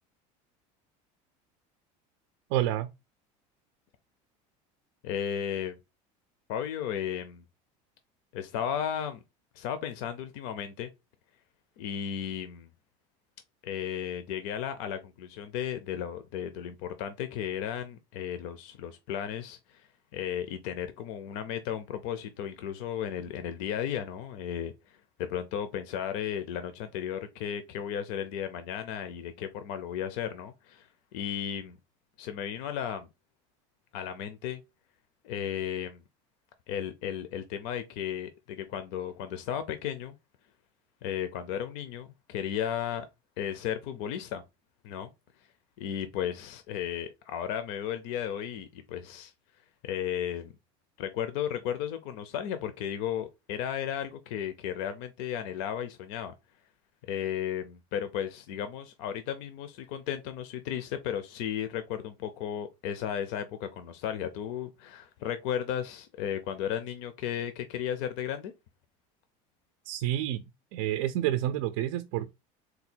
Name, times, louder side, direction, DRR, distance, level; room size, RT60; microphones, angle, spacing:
voice 1, 2.5-2.9 69.8-70.4 70.7-72.3, right 13 dB, 75° right, 0.4 m, -29 dB
voice 2, 5.0-5.8 6.5-7.4 8.3-9.2 9.6-10.9 11.8-12.7 13.6-19.9 20.1-31.8 32.2-33.1 33.9-34.6 35.2-36.0 36.7-40.2 41.0-43.1 43.4-44.4 44.8-45.1 45.8-49.3 49.8-50.5 51.0-56.3 57.1-68.5, left 9 dB, 65° left, 0.6 m, -34 dB
3.9 x 2.3 x 4.3 m
cardioid pair, 165°, 16 cm